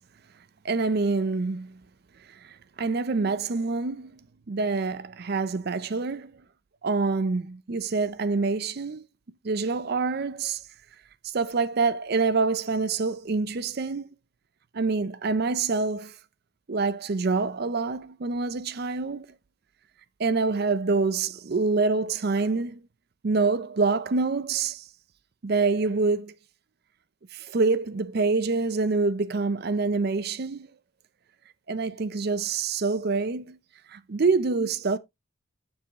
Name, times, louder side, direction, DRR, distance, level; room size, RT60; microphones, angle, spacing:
voice 1, 0.6-1.7 2.8-4.1 4.5-6.3 6.8-9.0 9.4-10.6 11.3-14.1 14.7-16.2 16.7-19.3 20.2-22.8 23.2-24.8 25.4-26.3 27.3-30.7 31.7-33.6 33.9-35.0, right 4 dB, 45° right, 0.5 m, -26 dB
7.6 x 6.9 x 2.9 m
head